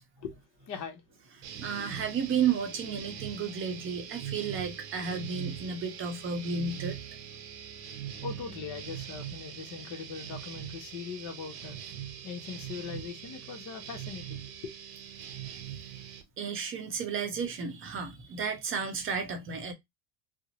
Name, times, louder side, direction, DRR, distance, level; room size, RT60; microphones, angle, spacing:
voice 1, 0.7-1.0 8.2-11.8 12.2-14.7, left 6 dB, 40° left, 0.7 m, -40 dB
sound 1, 1.4-16.2, right 9 dB, 75° right, 0.9 m, -42 dB
voice 2, 1.6-7.0 16.4-19.7, right 6 dB, 25° right, 0.6 m, -32 dB
2.5 x 2.0 x 2.8 m
supercardioid pair, 115°, 47 cm